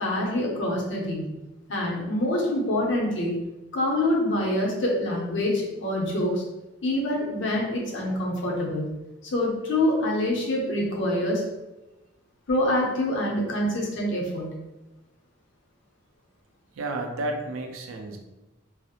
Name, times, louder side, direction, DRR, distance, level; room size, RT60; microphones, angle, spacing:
voice 1, 0.0-1.3 1.7-3.4 3.7-6.4 6.8-8.9 9.2-11.4 12.5-14.5, left 1 dB, 60° left, -2 dB, 0.6 m, -26 dB
voice 2, 16.8-18.2, right 2 dB, 80° right, 4 dB, 0.4 m, -31 dB
2.3 x 2.0 x 2.8 m, 1.0 s
head